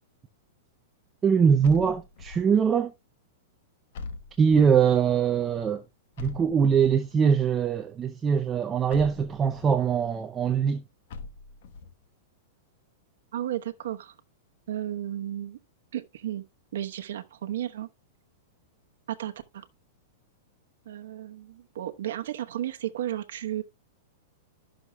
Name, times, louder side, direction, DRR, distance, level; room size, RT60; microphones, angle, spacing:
voice 1, 1.2-2.9 4.4-5.8 6.2-10.8, right 7 dB, 15° right, 0.5 m, -22 dB
sound 1, 1.6-2.6 3.9-4.9 6.2-7.1 8.9-9.8 11.1-11.9, left 4 dB, 55° left, 1.1 m, -41 dB
voice 2, 13.3-14.1 14.7-15.6 15.9-16.4 16.7-17.9 19.1-19.7 20.9-23.6, right 12 dB, 70° right, 1.0 m, -33 dB
12.5 x 6.2 x 2.2 m
supercardioid pair, 160°, 0 cm